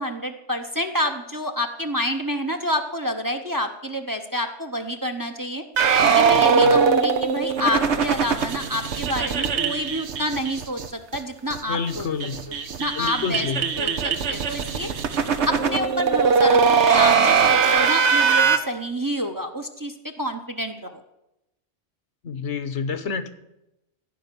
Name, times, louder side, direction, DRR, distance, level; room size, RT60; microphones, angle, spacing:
voice 1, 0.0-5.6 6.0-12.1 12.5-13.5 13.8-14.9 15.5-21.0, equal, 20° right, 5 dB, 0.8 m, -28 dB
sound 1, 5.8-10.9 11.1-11.2 11.5-11.6 11.9-18.6, right 6 dB, 75° right, 1.2 m, -21 dB
voice 2, 6.3-6.8 11.7-12.4 13.0-13.6 22.2-23.3, left 6 dB, 75° left, 10 dB, 1.3 m, -29 dB
15.5 x 5.3 x 9.3 m, 0.90 s
omnidirectional pair, 1.2 m